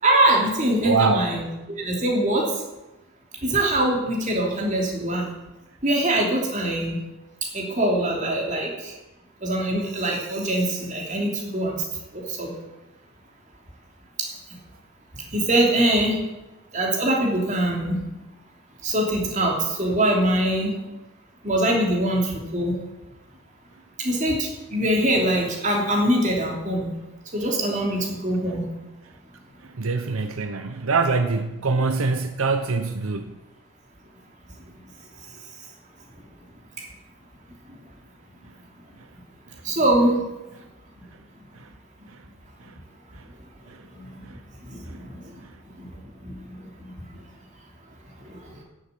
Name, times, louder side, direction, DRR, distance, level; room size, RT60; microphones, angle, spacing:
voice 1, 0.0-2.5 3.4-5.3 5.8-7.0 7.5-8.9 9.4-11.8 12.1-12.5 14.2-14.3 15.3-16.2 16.7-18.0 18.8-20.8 21.4-22.8 24.0-26.9 27.3-28.7 36.8-36.9 37.7-37.8 39.6-40.2 43.9-44.2 44.6-45.4 45.8-47.2 48.2-48.6, right 1 dB, 35° right, -1 dB, 3.1 m, -23 dB
voice 2, 0.8-1.3 29.8-33.4 41.6-41.7 43.7-43.8 44.2-44.4 44.9-45.0, right 4 dB, 85° right, 8 dB, 0.8 m, -24 dB
11.0 x 7.7 x 8.5 m, 1.0 s
head